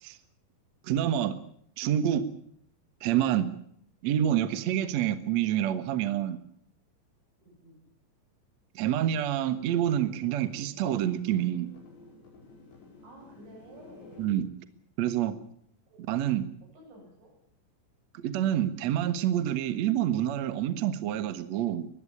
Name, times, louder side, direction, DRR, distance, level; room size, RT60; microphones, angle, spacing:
voice 1, 0.8-1.4 1.8-2.2 3.0-3.5 4.0-6.4 8.7-11.7 14.2-14.5 15.0-15.4 16.1-16.4 18.2-21.9, right 11 dB, 65° right, 12 dB, 1.7 m, -27 dB
voice 2, 7.4-7.8 13.0-14.3 15.9-16.5 16.7-17.3, right 1 dB, 85° right, 1 dB, 10.5 m, -52 dB
sound 1, 9.3-14.3, left 3 dB, 75° left, 7.7 m, -53 dB
21.0 x 15.0 x 9.9 m, 0.67 s
omnidirectional pair, 5.1 m